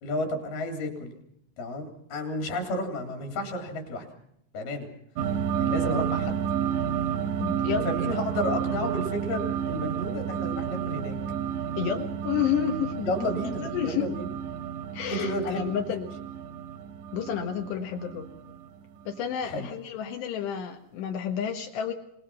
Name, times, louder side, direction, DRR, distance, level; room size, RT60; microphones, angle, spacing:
voice 1, 0.0-1.1 1.6-4.1 4.5-4.9 5.6-6.4 7.9-11.2 13.0-14.4 15.1-15.7 19.4-19.7, left 1 dB, 60° left, 5 dB, 5.2 m, -32 dB
sound 1, 5.2-19.1, right 8 dB, 85° right, 3.2 m, -31 dB
voice 2, 7.4-7.9 11.8-13.1 13.6-14.1 14.9-16.2 17.1-18.3 19.1-21.9, left 8 dB, 75° left, 3 dB, 3.7 m, -30 dB
26.0 x 20.5 x 5.7 m, 0.73 s
omnidirectional pair, 5.0 m